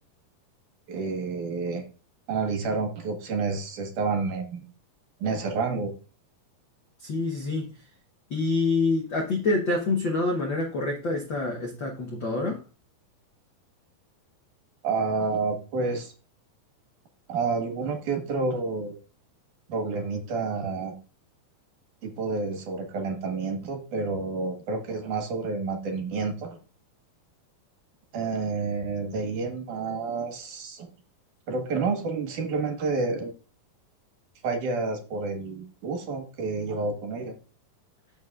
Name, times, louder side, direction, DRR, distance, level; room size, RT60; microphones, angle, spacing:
voice 1, 0.9-1.9 2.3-4.6 5.2-5.9 14.8-16.1 17.3-19.0 19.7-20.9 22.0-26.6 28.1-30.9 31.5-33.3 34.4-37.3, right 4 dB, 65° right, 3.1 m, -29 dB
voice 2, 7.0-7.7 8.3-12.6, left 3 dB, 65° left, 1.1 m, -26 dB
13.5 x 6.2 x 2.5 m
omnidirectional pair, 4.1 m